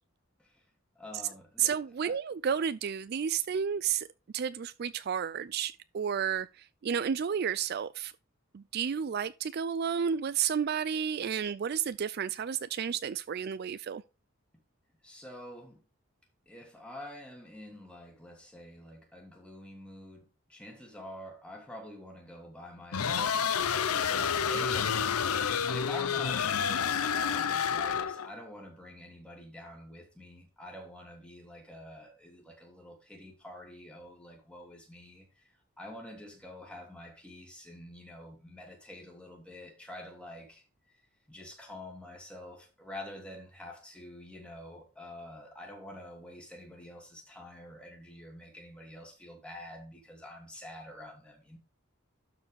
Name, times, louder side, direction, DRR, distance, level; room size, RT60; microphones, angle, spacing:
voice 1, 1.0-2.2 15.0-15.8 16.5-40.7 41.3-51.6, left 1 dB, 5° left, 2.4 m, -47 dB
voice 2, 1.6-4.1 4.3-6.5 6.8-8.1 8.5-14.0, right 7 dB, 45° right, 0.3 m, -31 dB
sound 1, 22.9-28.3, left 7 dB, 90° left, 0.7 m, -29 dB
12.0 x 4.7 x 3.5 m
head